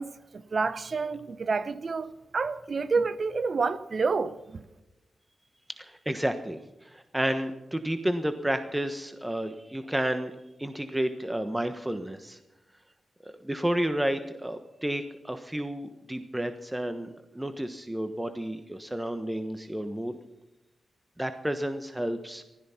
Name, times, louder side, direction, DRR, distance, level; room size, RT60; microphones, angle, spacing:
voice 1, 0.0-4.6, right 4 dB, 55° right, 0.9 m, -29 dB
voice 2, 5.7-12.4 13.2-17.1 17.3-20.2 21.2-22.4, right 1 dB, 15° right, 1.2 m, -31 dB
15.5 x 13.5 x 5.8 m
supercardioid pair, 45°, 0 cm